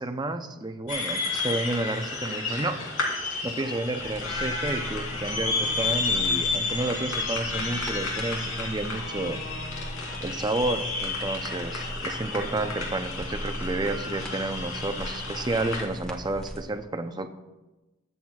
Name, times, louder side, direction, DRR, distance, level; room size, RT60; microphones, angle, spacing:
voice 1, 0.0-2.8 3.4-9.4 10.2-17.3, right 2 dB, 20° right, 8 dB, 0.6 m, -31 dB
sound 1, 0.9-15.8, left 3 dB, 75° left, 2.9 m, -31 dB
sound 2, 4.0-16.6, equal, 5° left, 1.3 m, -39 dB
20.5 x 7.8 x 2.4 m, 1.1 s
head